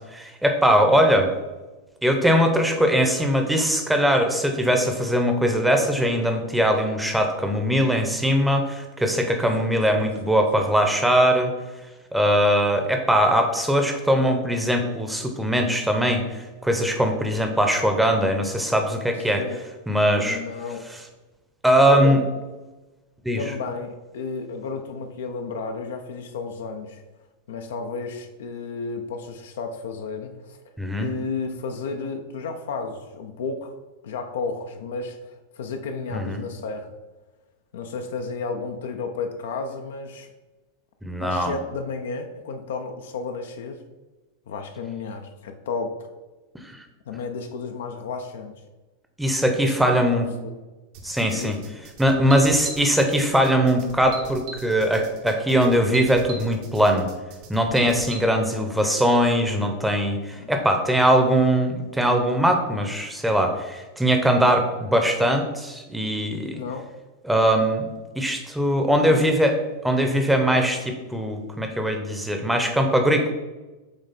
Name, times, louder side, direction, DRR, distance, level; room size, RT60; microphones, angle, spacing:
voice 1, 0.1-1.3 2.0-11.5 12.1-19.4 19.9-20.4 20.9-21.0 21.6-22.2 23.2-23.4 30.8-31.1 36.1-36.4 41.0-41.5 46.6-46.8 49.2-50.2 51.0-51.6 52.0-57.1 57.5-66.6 67.2-69.5 69.8-73.3, equal, 5° right, 4 dB, 0.8 m, -21 dB
voice 2, 9.6-10.7 19.4-19.6 20.2-20.8 21.9-22.2 23.4-27.0 27.5-30.6 31.0-33.7 34.0-36.9 37.7-40.3 41.2-43.8 44.5-46.0 47.1-48.5 50.1-50.5 51.3-51.6 60.4-60.5 66.5-66.9 69.0-69.3, left 4 dB, 60° left, 5 dB, 0.6 m, -32 dB
sound 1, 50.9-58.2, right 4 dB, 50° right, 1.0 m, -41 dB
8.0 x 3.2 x 4.1 m, 1.2 s
figure-of-eight pair, 90°, 0 cm